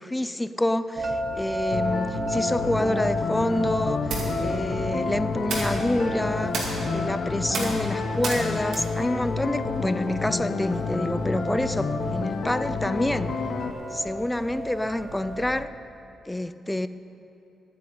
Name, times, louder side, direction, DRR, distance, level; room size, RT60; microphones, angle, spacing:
voice 1, 0.0-13.4 13.9-15.7 16.3-16.9, left 1 dB, 10° left, 13 dB, 0.3 m, -28 dB
sound 1, 1.0-15.7, equal, 40° right, 0.7 m, -34 dB
sound 2, 1.7-13.7, left 4 dB, 50° left, 0.7 m, -30 dB
sound 3, 4.0-10.2, right 3 dB, 70° right, 2.3 m, -35 dB
9.4 x 9.3 x 9.3 m, 2.9 s
wide cardioid pair, 160°, 0 cm